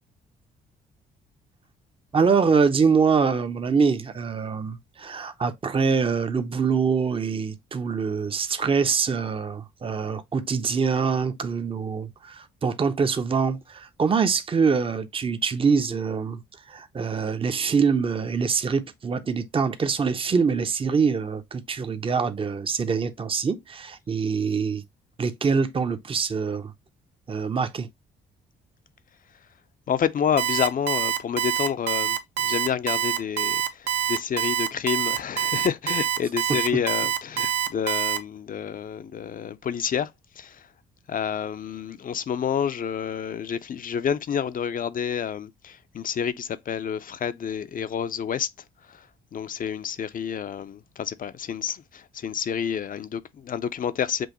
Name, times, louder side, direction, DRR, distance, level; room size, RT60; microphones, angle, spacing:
voice 1, 2.1-16.4 16.7-24.8 25.2-26.7 27.3-27.9, right 5 dB, 25° right, 0.6 m, -24 dB
voice 2, 29.9-40.7 41.1-48.5 48.8-54.3, left 8 dB, 45° left, 0.5 m, -29 dB
Alarm, 30.4-38.2, right 10 dB, 60° right, 0.7 m, -25 dB
6.1 x 2.5 x 2.9 m
supercardioid pair, 60°, 20 cm